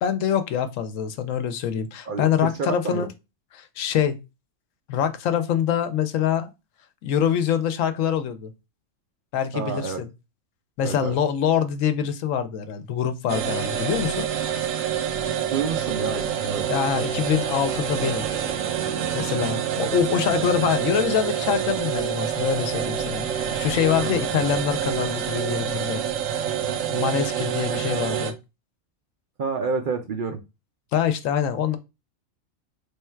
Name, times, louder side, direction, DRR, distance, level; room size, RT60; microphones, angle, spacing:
voice 1, 0.0-3.1 3.5-4.2 4.9-6.5 7.0-8.5 9.3-10.1 10.8-14.3 16.7-18.2 19.1-26.0 26.9-28.3 30.9-31.8, left 8 dB, 75° left, 0.9 m, -25 dB
voice 2, 2.1-3.1 9.5-10.0 10.8-11.2 15.5-16.7 24.0-24.4 29.4-30.4, right 5 dB, 55° right, 0.6 m, -29 dB
sound 1, 13.3-28.3, right 9 dB, 75° right, 1.0 m, -27 dB
3.3 x 2.3 x 4.3 m
omnidirectional pair, 1.4 m